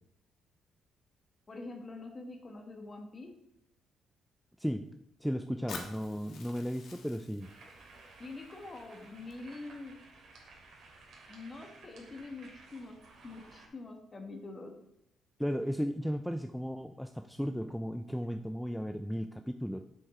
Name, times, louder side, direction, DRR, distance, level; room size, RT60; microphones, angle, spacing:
voice 1, 1.5-3.3 8.2-9.9 11.3-13.0 13.2-14.7, left 3 dB, 35° left, 4 dB, 1.6 m, -45 dB
voice 2, 5.2-7.5 15.4-19.8, equal, ahead, 7 dB, 0.4 m, -35 dB
Fire, 5.7-9.7, left 5 dB, 70° left, 1.4 m, -50 dB
sound 1, 7.4-13.7, right 3 dB, 70° right, 2.6 m, -55 dB
7.4 x 6.4 x 4.3 m, 0.81 s
cardioid pair, 90°, 0 cm